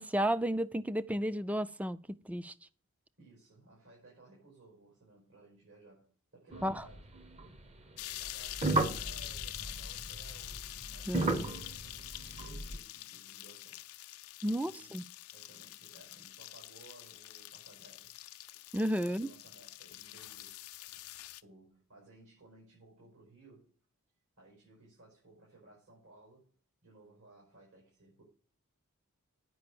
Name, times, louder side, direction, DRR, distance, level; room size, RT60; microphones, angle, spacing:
voice 1, 0.0-2.5 6.6-6.8 11.1-11.5 14.4-15.0 18.7-19.3, equal, 5° right, 0.3 m, -32 dB
voice 2, 3.2-7.3 8.2-13.8 14.5-14.9 15.3-18.1 19.0-21.0 21.4-23.7 24.4-26.5 26.8-28.2, right 2 dB, 75° right, 5.4 m, -59 dB
sound 1, 6.5-7.6 8.2-12.8, right 2 dB, 30° right, 0.8 m, -36 dB
sound 2, 8.0-21.4, left 16 dB, 80° left, 0.5 m, -46 dB
9.2 x 5.5 x 6.8 m
head